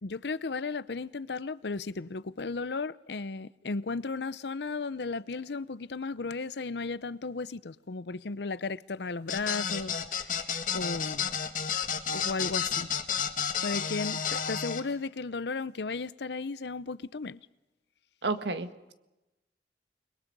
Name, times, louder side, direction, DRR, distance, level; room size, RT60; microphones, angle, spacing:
voice 1, 0.0-11.3 12.1-12.9 13.6-17.4, left 4 dB, 75° left, 0.7 m, -35 dB
sound 1, 9.3-14.8, left 7 dB, 50° left, 1.9 m, -31 dB
voice 2, 18.2-18.9, right 3 dB, 80° right, 1.6 m, -32 dB
29.5 x 22.0 x 5.4 m
head